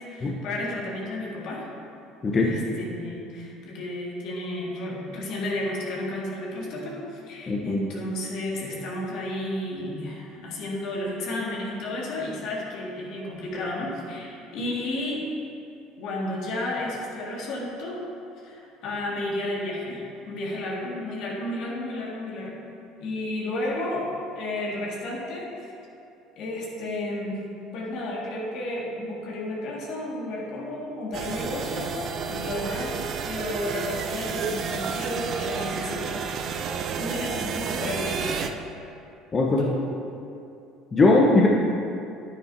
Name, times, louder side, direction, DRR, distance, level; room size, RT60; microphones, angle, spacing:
voice 1, 0.0-1.7 2.4-15.3 16.0-18.0 18.4-22.7 23.0-25.7 26.4-27.4 27.7-36.2 37.0-38.5 39.6-39.8, left 1 dB, 65° left, -3 dB, 2.0 m, -32 dB
voice 2, 7.5-7.8 39.3-39.7 40.9-41.5, left 2 dB, 30° left, -2 dB, 1.0 m, -19 dB
sound 1, 31.1-38.5, right 6 dB, 55° right, 0.5 m, -31 dB
9.4 x 9.4 x 2.8 m, 2.6 s
hypercardioid pair, 75°, 0 cm